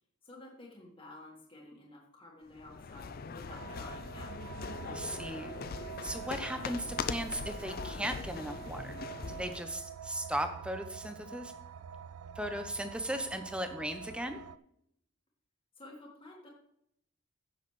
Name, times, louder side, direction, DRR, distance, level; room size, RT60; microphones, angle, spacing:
voice 1, 0.2-4.6 15.8-16.5, left 2 dB, 25° left, -4 dB, 1.7 m, -52 dB
sound 1, 2.5-9.7, left 5 dB, 45° left, 0.5 m, -41 dB
sound 2, 3.5-14.6, right 8 dB, 85° right, 0.3 m, -47 dB
voice 2, 4.8-5.5 6.0-9.0 9.3-11.5 12.3-14.4, right 1 dB, 5° right, 7 dB, 0.8 m, -37 dB
15.5 x 6.4 x 3.2 m, 0.74 s
head